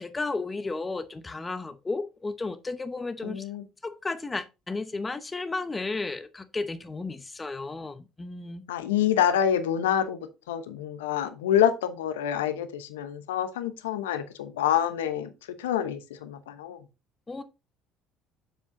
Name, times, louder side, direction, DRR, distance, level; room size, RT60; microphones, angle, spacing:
voice 1, 0.0-3.4 3.8-8.6 17.3-17.4, left 3 dB, 20° left, 0.8 m, -33 dB
voice 2, 3.2-3.6 8.7-10.2 10.5-15.3 15.6-16.8, left 9 dB, 80° left, 0.9 m, -27 dB
7.3 x 7.1 x 2.7 m
hypercardioid pair, 60°, 0 cm